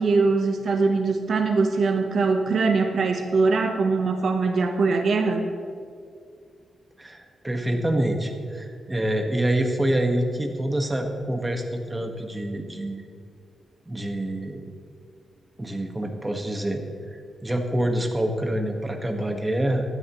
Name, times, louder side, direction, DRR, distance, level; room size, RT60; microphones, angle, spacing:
voice 1, 0.0-5.5, right 4 dB, 65° right, 5 dB, 1.0 m, -22 dB
voice 2, 7.0-13.0 13.9-14.6 15.6-16.8 17.4-19.8, right 1 dB, 15° right, 3 dB, 1.5 m, -26 dB
16.5 x 12.5 x 3.1 m, 2.2 s
cardioid pair, 80°, 0 cm